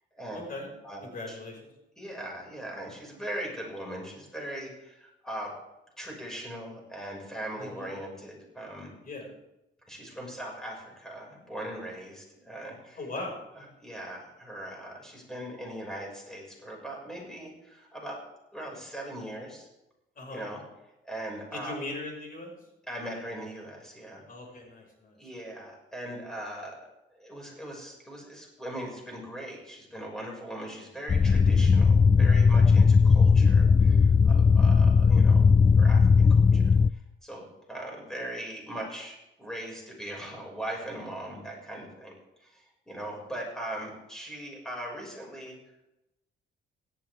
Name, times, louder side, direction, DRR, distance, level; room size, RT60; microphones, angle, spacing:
voice 1, 0.3-0.7 1.0-1.7 7.6-7.9 9.0-9.3 13.0-13.4 20.2-20.4 21.5-22.5 24.3-25.2, left 2 dB, 45° left, 1 dB, 5.9 m, -39 dB
voice 2, 2.0-5.5 6.0-8.9 9.9-13.0 13.6-18.2 18.5-19.7 20.3-21.8 22.9-24.2 25.2-26.9 27.1-42.1 42.4-45.5, right 1 dB, 5° left, -1 dB, 6.0 m, -40 dB
sound 1, 31.1-36.9, left 5 dB, 25° left, 0.4 m, -18 dB
17.0 x 13.0 x 3.6 m, 0.93 s
cardioid pair, 90°, 20 cm